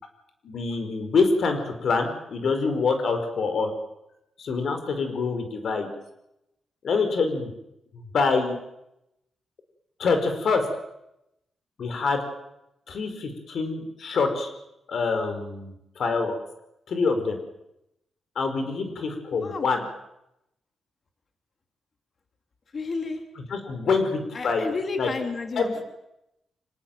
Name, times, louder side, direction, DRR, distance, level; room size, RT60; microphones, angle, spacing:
voice 1, 0.4-3.7 4.4-5.9 6.8-7.5 7.9-8.6 10.0-10.7 11.8-12.2 12.9-14.5 14.9-16.4 16.9-17.4 18.4-19.8 23.4-24.7 25.0-25.1 25.6-25.8, left 4 dB, 60° left, 7 dB, 5.2 m, -25 dB
voice 2, 22.7-23.2 24.3-25.6, left 4 dB, 40° left, 5 dB, 3.0 m, -31 dB
25.5 x 19.0 x 9.1 m, 0.85 s
cardioid pair, 125°, 0 cm